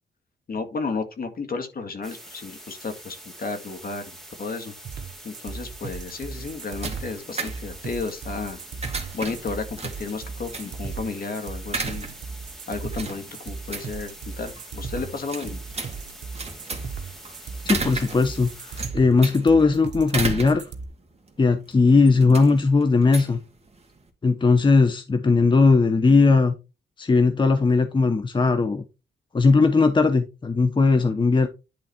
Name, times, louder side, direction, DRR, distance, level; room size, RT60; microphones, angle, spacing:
voice 1, 0.5-4.0 4.4-4.7 5.2-8.6 9.1-12.1 12.7-15.6, left 4 dB, 55° left, 2.0 m, -32 dB
sound 1, 2.0-18.9, right 1 dB, ahead, 2.4 m, -45 dB
sound 2, 4.8-20.8, right 5 dB, 70° right, 1.2 m, -36 dB
sound 3, 6.1-24.1, right 4 dB, 35° right, 2.0 m, -36 dB
voice 2, 17.6-20.7 21.4-23.4 24.2-26.5 27.0-28.8 29.3-31.5, left 4 dB, 25° left, 0.8 m, -18 dB
10.5 x 4.0 x 4.2 m
cardioid pair, 95°, 18 cm